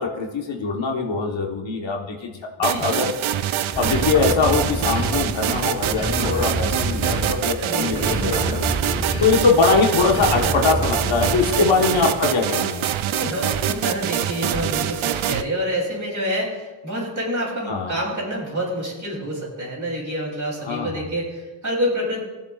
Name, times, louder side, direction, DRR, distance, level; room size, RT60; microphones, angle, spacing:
voice 1, 0.0-2.3 2.6-3.1 3.7-8.7 9.2-12.8 17.7-18.0 20.6-21.0, left 4 dB, 60° left, 1 dB, 1.3 m, -22 dB
voice 2, 2.6-3.0 7.6-8.2 11.5-12.1 13.1-22.2, equal, 35° right, -4 dB, 3.3 m, -27 dB
sound 1, 2.6-15.4, right 10 dB, 70° right, 0.6 m, -25 dB
sound 2, 3.7-5.4 5.8-7.6 7.9-9.6 10.0-11.7, equal, 10° right, 2.8 m, -27 dB
16.5 x 7.2 x 2.4 m, 1.2 s
cardioid pair, 85°, 50 cm